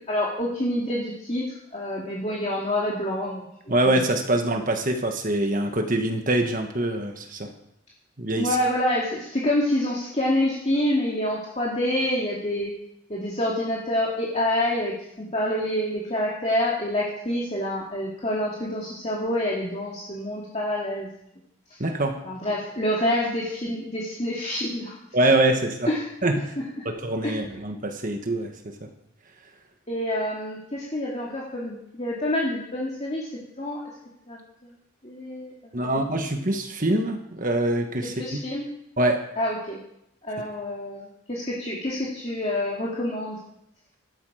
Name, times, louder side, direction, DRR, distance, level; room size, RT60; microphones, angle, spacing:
voice 1, 0.1-3.8 8.4-12.7 13.1-21.1 21.7-21.8 22.2-25.0 25.9-26.1 27.2-27.4 29.9-33.3 33.6-33.8 34.3-34.7 35.0-35.9 38.2-38.7 39.4-39.8 40.2-43.4, left 1 dB, 30° left, -5 dB, 2.4 m, -27 dB
voice 2, 3.7-7.5 8.2-8.6 21.8-22.2 25.1-25.9 26.2-26.5 26.8-28.9 35.7-38.1 39.0-39.2, right 1 dB, 40° right, 5 dB, 1.5 m, -24 dB
16.5 x 13.0 x 5.0 m, 0.78 s
head